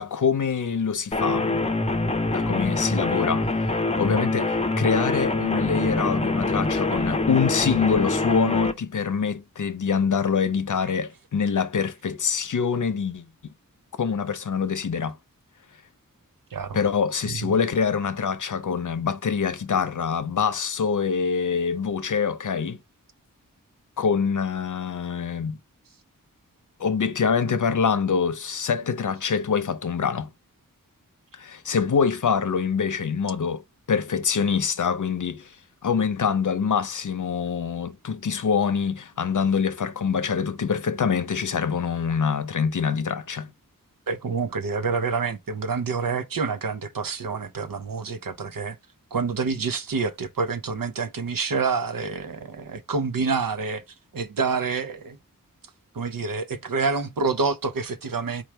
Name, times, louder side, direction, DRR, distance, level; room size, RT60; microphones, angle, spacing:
voice 1, 0.0-1.7 2.3-3.7 4.0-13.5 14.0-15.2 16.7-22.8 24.0-25.6 26.8-30.3 31.3-33.6 33.9-35.6 35.8-43.5, left 6 dB, 60° left, 0.6 m, -25 dB
sound 1, 1.1-8.7, left 2 dB, 20° left, 0.6 m, -24 dB
voice 2, 44.1-48.8 49.1-53.8 54.1-55.2 55.9-58.4, right 4 dB, 70° right, 0.7 m, -27 dB
4.5 x 2.4 x 4.4 m
wide cardioid pair, 60°, 34 cm